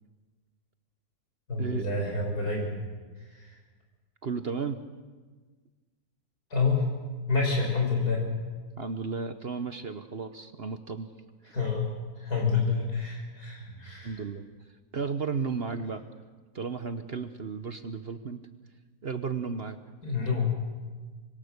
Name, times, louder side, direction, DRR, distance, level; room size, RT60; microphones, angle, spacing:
voice 1, 1.5-2.7 3.3-3.6 6.5-6.9 7.3-8.2 11.5-11.9 12.2-14.2 20.0-20.5, left 4 dB, 75° left, 0 dB, 6.7 m, -28 dB
voice 2, 4.2-4.8 8.8-11.1 14.0-14.5 14.9-16.0 16.5-18.4 19.0-19.8, right 5 dB, 45° right, 9 dB, 1.0 m, -33 dB
25.5 x 22.0 x 6.7 m, 1.4 s
omnidirectional pair, 1.6 m